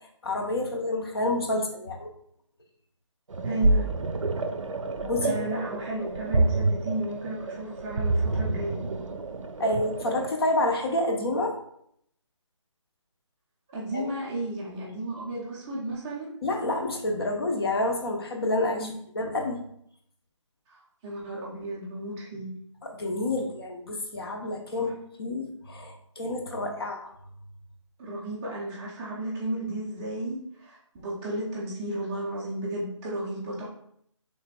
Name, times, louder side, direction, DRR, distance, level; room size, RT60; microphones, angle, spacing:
voice 1, 0.2-2.1 5.0-5.4 9.6-11.5 13.9-14.0 16.4-18.9 19.1-19.6 23.0-24.9 25.2-27.1, left 1 dB, 50° left, 2 dB, 0.8 m, -28 dB
sound 1, 3.3-10.3, right 2 dB, 80° right, 0.5 m, -28 dB
voice 2, 3.4-4.0 5.2-8.8 13.7-16.3 18.8-18.9 21.0-22.5 24.8-24.9 28.0-33.7, right 1 dB, 5° right, -6 dB, 0.4 m, -33 dB
5.5 x 3.3 x 2.2 m, 0.70 s
figure-of-eight pair, 155°, 16 cm